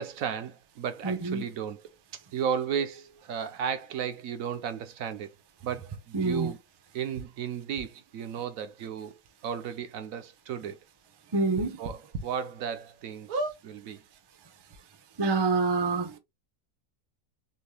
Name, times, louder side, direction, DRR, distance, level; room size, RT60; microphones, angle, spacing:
voice 1, 0.0-5.3 5.6-6.6 6.9-9.2 9.4-10.8 11.8-14.0, right 8 dB, 70° right, 1.0 m, -34 dB
voice 2, 1.0-1.4 6.1-6.5 11.3-11.7 15.2-16.2, right 3 dB, 30° right, 0.4 m, -26 dB
sound 1, 7.2-7.3 7.8-7.9 8.8-8.9 9.2-9.3 9.8-9.9 11.5-12.2 12.7-12.8 13.3-13.6 14.4-14.5 14.7-14.8, right 2 dB, 85° right, 1.5 m, -33 dB
4.4 x 3.1 x 3.3 m
omnidirectional pair, 1.6 m